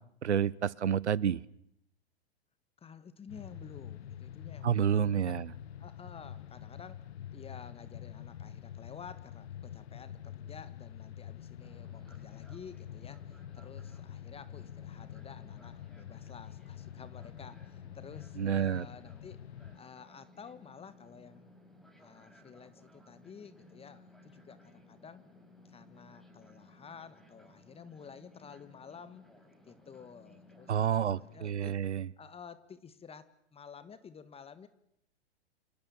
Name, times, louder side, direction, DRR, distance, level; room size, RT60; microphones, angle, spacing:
voice 1, 0.2-1.4 4.6-5.5 18.4-18.8 30.7-32.1, right 8 dB, 80° right, 24 dB, 1.0 m, -29 dB
voice 2, 2.8-5.4 5.8-7.0 7.3-19.4 19.7-21.5 22.0-25.2 25.6-29.2 29.7-31.8 32.2-34.7, left 6 dB, 15° left, 14 dB, 1.6 m, -51 dB
sound 1, 3.3-19.8, left 10 dB, 70° left, 1.1 m, -46 dB
Fixed-wing aircraft airplane, 11.6-31.4, left 2 dB, ahead, 7.8 m, -59 dB
27.5 x 27.5 x 7.2 m, 0.74 s
hypercardioid pair, 105°, 34 cm